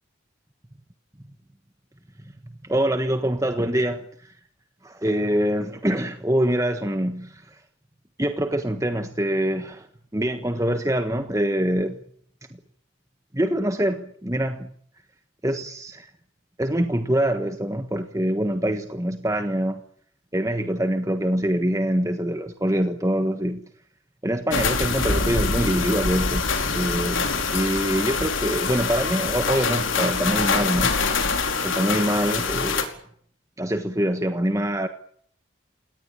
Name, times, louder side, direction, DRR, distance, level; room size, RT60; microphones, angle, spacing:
voice 1, 2.6-4.3 4.8-7.6 8.2-9.9 10.1-12.0 13.3-14.7 15.4-16.1 16.6-19.8 20.3-23.6 24.2-26.5 26.7-31.0 31.6-32.9 33.6-34.9, right 1 dB, 15° right, 1.4 m, -24 dB
sound 1, 24.5-32.8, left 4 dB, 80° left, 4.9 m, -24 dB
29.5 x 18.5 x 9.0 m
head